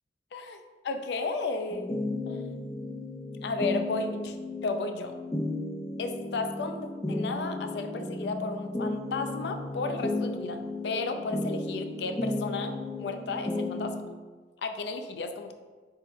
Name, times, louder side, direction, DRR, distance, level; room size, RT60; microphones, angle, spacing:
voice 1, 0.8-2.4 3.4-4.4 4.6-5.1 6.0-14.0 14.6-15.5, left 3 dB, 70° left, 7 dB, 0.4 m, -33 dB
sound 1, 1.7-14.0, left 2 dB, 15° left, 0.5 m, -34 dB
3.6 x 3.0 x 4.4 m, 1.4 s
head